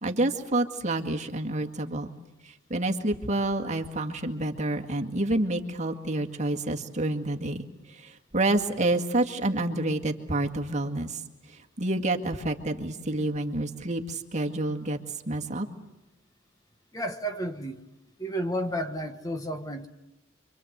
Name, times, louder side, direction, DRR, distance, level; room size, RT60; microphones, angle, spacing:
voice 1, 0.0-2.1 2.4-11.2 11.5-15.0 15.3-15.7, right 2 dB, 35° right, 3 dB, 2.0 m, -28 dB
voice 2, 16.9-17.8 18.2-19.9, equal, 20° left, 7 dB, 1.4 m, -32 dB
29.0 x 24.5 x 8.1 m, 0.95 s
head